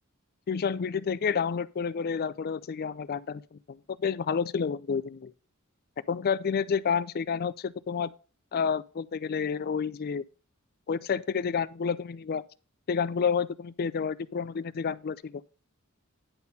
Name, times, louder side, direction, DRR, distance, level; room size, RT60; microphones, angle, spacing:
voice 1, 0.5-3.6 4.0-5.3 6.1-8.1 8.5-10.2 10.9-12.4 12.9-15.4, left 6 dB, 45° left, 0.4 m, -29 dB
10.0 x 4.2 x 5.4 m
head